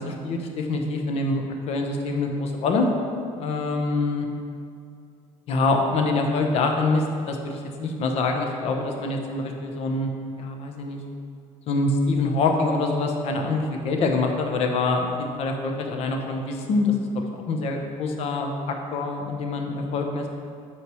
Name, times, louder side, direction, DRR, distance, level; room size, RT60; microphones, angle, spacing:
voice 1, 0.0-2.9 3.4-4.3 5.5-10.1 10.4-11.0 11.7-20.3, left 3 dB, 55° left, 3 dB, 0.9 m, -25 dB
8.8 x 3.1 x 6.1 m, 2.5 s
cardioid pair, 160°, 12 cm